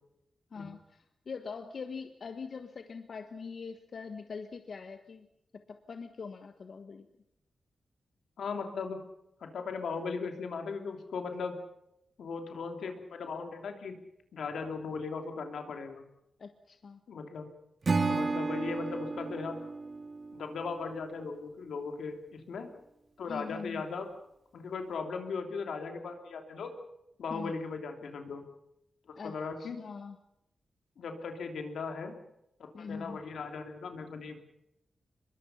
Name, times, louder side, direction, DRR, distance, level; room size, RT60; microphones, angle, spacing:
voice 1, 0.5-5.3 5.7-7.1 16.4-17.0 23.3-23.8 27.3-27.5 29.1-30.2 32.7-33.2, left 5 dB, 60° left, 7 dB, 1.3 m, -43 dB
voice 2, 8.4-9.0 9.4-11.6 12.2-14.0 14.3-16.0 17.1-17.5 18.1-19.6 20.3-22.7 23.2-24.1 24.5-26.7 27.2-28.4 29.2-29.8 31.0-32.1 32.6-34.4, left 4 dB, 90° left, 5 dB, 3.0 m, -38 dB
Acoustic guitar / Strum, 17.8-21.0, right 3 dB, 45° right, 2.2 m, -33 dB
24.5 x 22.0 x 5.7 m, 0.83 s
cardioid pair, 85°, 0 cm